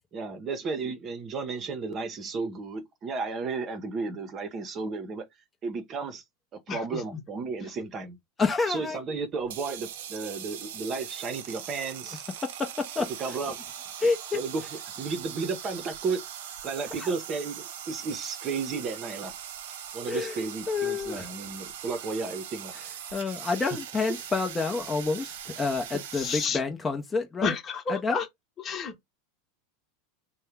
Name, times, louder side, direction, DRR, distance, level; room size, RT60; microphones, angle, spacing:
voice 1, 0.1-5.2 5.6-6.2 6.7-8.2 8.7-12.2 13.2-13.6 14.3-14.6 15.0-16.2 16.6-19.3 19.9-22.7, right 4 dB, 35° right, 0.7 m, -33 dB
voice 2, 6.7-7.0 26.2-26.6 27.4-28.2 28.6-28.9, left 5 dB, 35° left, 1.1 m, -30 dB
voice 3, 8.4-9.0 12.4-13.4 14.0-14.4 17.0-17.1 20.1-20.4 20.7-21.3 22.7-22.8 23.1-27.6 27.9-28.2, left 4 dB, 20° left, 0.7 m, -29 dB
sound 1, 9.4-26.5, right 9 dB, 70° right, 0.6 m, -41 dB
2.7 x 2.1 x 3.4 m
hypercardioid pair, 90°, 0 cm